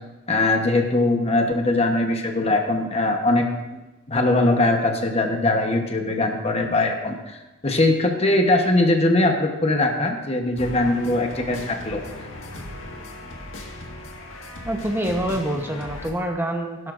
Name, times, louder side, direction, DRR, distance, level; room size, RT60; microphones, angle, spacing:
voice 1, 0.3-3.5 4.1-7.4 7.6-12.0, left 2 dB, 30° left, 4 dB, 1.1 m, -21 dB
sound 1, 10.6-16.1, left 1 dB, 85° left, 1.7 m, -37 dB
voice 2, 14.6-16.9, right 1 dB, 10° right, 2 dB, 1.0 m, -26 dB
17.0 x 11.0 x 2.6 m, 1.1 s
head